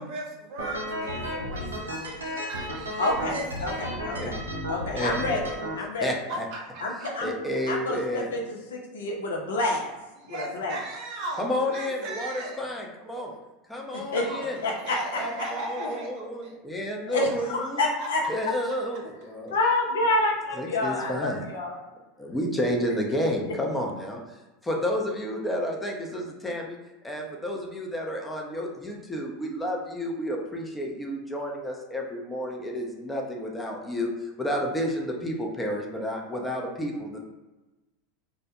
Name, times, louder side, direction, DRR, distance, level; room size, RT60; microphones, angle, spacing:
voice 1, 0.0-3.8 4.1-4.5 6.1-7.1 10.2-12.7 13.0-13.4 14.1-16.5 18.0-18.1, right 2 dB, 55° right, -1 dB, 0.7 m, -38 dB
sound 1, 0.6-5.7, equal, 85° right, 0.4 m, -33 dB
voice 2, 3.0-4.4 4.7-5.4 5.7-6.1 6.8-7.3 7.7-9.9 10.2-10.8 13.9-14.2 14.6-15.0 15.8-15.9 17.1-18.2 19.5-21.8 23.5-23.6, left 2 dB, 75° left, -1 dB, 0.5 m, -28 dB
voice 3, 6.0-6.4 7.2-8.4 11.4-13.3 13.7-14.6 15.2-17.8 18.3-19.6 20.6-21.5 22.2-24.4 24.6-26.8 27.0-37.2, equal, 10° left, 0 dB, 0.5 m, -31 dB
2.1 x 2.1 x 2.8 m, 1.1 s
figure-of-eight pair, 85°, 0 cm